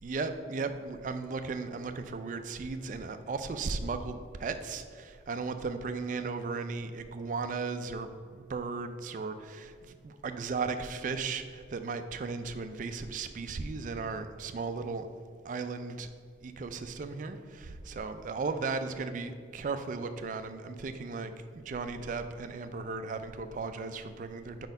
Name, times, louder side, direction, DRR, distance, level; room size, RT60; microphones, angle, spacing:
voice 1, 0.0-15.1 15.4-16.1 16.4-24.7, right 4 dB, 40° right, 9 dB, 0.3 m, -36 dB
4.5 x 4.1 x 5.2 m, 2.1 s
head